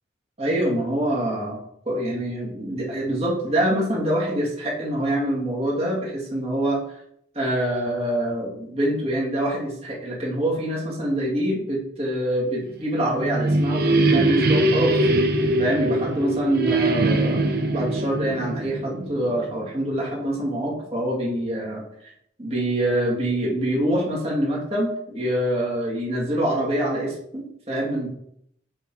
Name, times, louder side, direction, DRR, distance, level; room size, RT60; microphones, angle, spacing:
voice 1, 0.4-6.8 7.3-15.1 15.6-21.8 22.4-28.1, right 1 dB, 35° right, -4 dB, 2.2 m, -25 dB
sound 1, 12.9-19.6, right 2 dB, 55° right, 1.0 m, -22 dB
8.8 x 3.8 x 4.6 m, 0.71 s
head